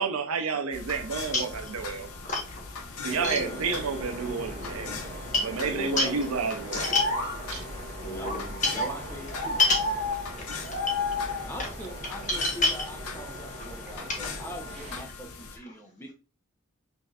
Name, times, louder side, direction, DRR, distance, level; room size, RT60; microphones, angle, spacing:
voice 1, 0.0-2.1 3.0-5.0 5.4-7.1 7.5-7.7, right 5 dB, 80° right, 0.6 m, -30 dB
sound 1, 0.7-15.6, left 5 dB, 85° left, 0.7 m, -41 dB
sound 2, 1.1-11.9, left 2 dB, 65° left, 1.4 m, -36 dB
voice 2, 2.2-2.6 3.1-3.6 5.3-5.4 5.7-6.0 6.7-7.1 7.7-8.8 9.6-9.8 10.3-10.4 11.6-11.7 12.3-12.8 14.1-14.3, left 3 dB, 35° left, 1.1 m, -27 dB
sound 3, 3.1-15.1, right 1 dB, 35° right, 1.0 m, -42 dB
voice 3, 8.0-8.4 8.7-9.6 11.5-16.1, equal, 10° left, 0.6 m, -42 dB
5.3 x 2.6 x 2.3 m
head